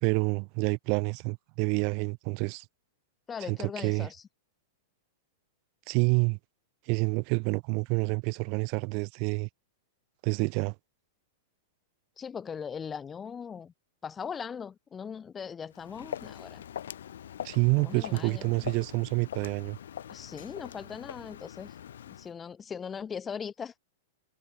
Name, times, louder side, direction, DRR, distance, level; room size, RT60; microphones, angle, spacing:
voice 1, 0.0-2.6 3.4-4.1 5.9-6.4 6.9-9.5 10.2-10.7 17.4-19.8, right 36 dB, 45° right, 1.5 m, -28 dB
voice 2, 3.3-4.2 12.2-13.7 14.0-16.6 17.8-18.7 20.1-21.7 22.1-23.7, left 7 dB, 20° left, 3.6 m, -39 dB
Walk footsteps, 15.7-22.3, left 10 dB, 75° left, 6.3 m, -42 dB
hypercardioid pair, 110°, 0 cm